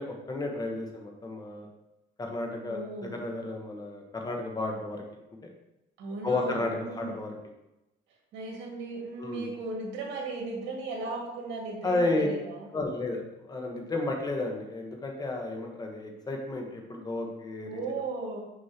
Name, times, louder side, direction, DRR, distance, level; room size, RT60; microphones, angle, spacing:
voice 1, 0.0-1.7 2.2-5.0 5.4-5.5 6.2-7.3 9.2-9.5 11.8-12.3 12.7-13.2 13.5-17.7, left 2 dB, 20° left, 2 dB, 1.1 m, -32 dB
voice 2, 2.6-3.1 6.0-7.1 8.3-12.0 12.2-12.7 17.6-18.4, right 3 dB, 80° right, -1 dB, 2.0 m, -36 dB
6.5 x 5.5 x 2.9 m, 0.94 s
cardioid pair, 125°, 19 cm